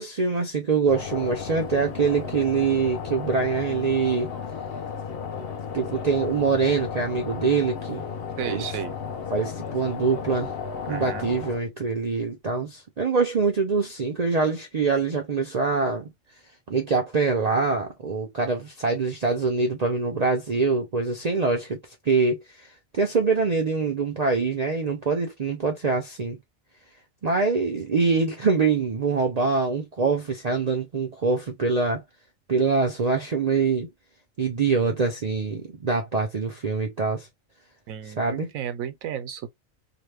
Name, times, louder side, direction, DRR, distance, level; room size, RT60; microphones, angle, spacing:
voice 1, 0.0-4.3 5.7-8.0 8.4-8.6 9.3-10.5 10.9-16.1 16.7-21.8 22.0-26.4 27.2-32.0 32.5-33.9 34.4-37.3 38.2-38.5, right 4 dB, 50° right, 0.4 m, -24 dB
sound 1, 0.9-11.6, left 6 dB, 60° left, 0.7 m, -34 dB
voice 2, 8.4-9.0 10.9-11.3 37.9-39.5, right 9 dB, 85° right, 1.1 m, -33 dB
2.9 x 2.1 x 3.2 m
omnidirectional pair, 1.4 m